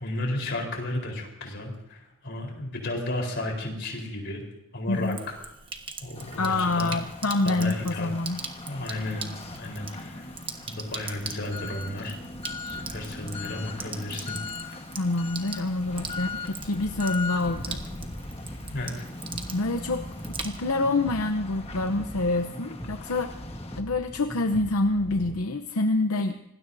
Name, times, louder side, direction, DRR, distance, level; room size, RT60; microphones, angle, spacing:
voice 1, 0.0-4.4 4.7-5.4 6.0-6.9 7.4-8.1 8.6-10.3 10.7-12.2 12.6-14.4 14.7-14.8 18.7-19.1, left 1 dB, 50° left, 1 dB, 4.1 m, -33 dB
Sink (filling or washing), 4.9-20.9, right 5 dB, 25° right, 1.3 m, -42 dB
sound 1, 6.1-23.8, left 2 dB, 25° left, 1.4 m, -39 dB
voice 2, 6.4-8.4 15.0-17.8 19.5-20.0 20.4-23.3 23.8-26.4, left 2 dB, 75° left, 7 dB, 0.8 m, -26 dB
sound 2, 17.4-25.3, equal, 10° left, 2.0 m, -42 dB
26.0 x 20.0 x 2.7 m, 0.88 s
head